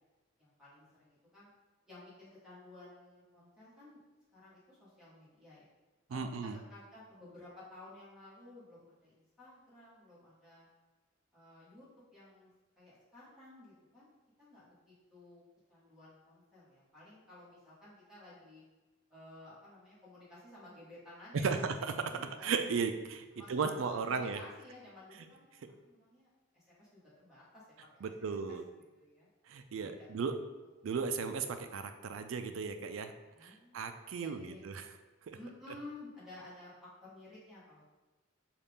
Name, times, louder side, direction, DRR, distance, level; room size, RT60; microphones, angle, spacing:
voice 1, 0.4-1.5 1.9-4.0 4.3-5.7 6.1-10.7 11.3-11.9 12.1-12.5 12.8-14.1 14.4-15.4 15.7-18.6 19.1-21.6 22.1-22.5 23.3-23.7 24.0-25.5 25.8-26.3 26.5-27.6 27.9-28.6 29.0-29.3 29.8-30.2 33.3-34.6 35.3-36.7 37.0-37.8, left 2 dB, 5° right, -10 dB, 1.5 m, -54 dB
voice 2, 6.1-6.6 21.3-21.9 22.4-24.4 28.0-28.6 29.5-30.4 30.8-33.1 33.4-34.9 35.3-35.4, right 5 dB, 80° right, 8 dB, 0.4 m, -35 dB
5.5 x 2.4 x 3.4 m, 1.2 s
head